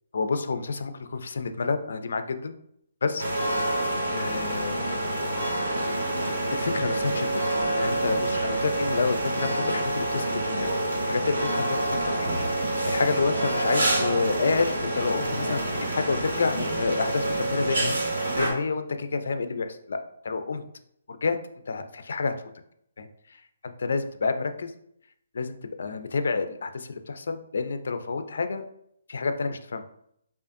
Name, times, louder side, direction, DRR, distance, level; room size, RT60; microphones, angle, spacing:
voice 1, 0.1-2.5 3.0-3.2 4.1-4.8 6.5-7.3 7.7-10.7 11.1-15.6 15.9-18.0 18.4-20.0 20.2-20.6 21.1-21.4 21.7-22.3 23.0-23.1 23.6-24.7 25.3-28.6 29.1-29.8, left 4 dB, 70° left, 9 dB, 0.4 m, -29 dB
sound 1, 3.2-18.5, right 1 dB, 85° right, 1.3 m, -27 dB
4.9 x 2.4 x 2.6 m, 0.73 s
hypercardioid pair, 170°, 0 cm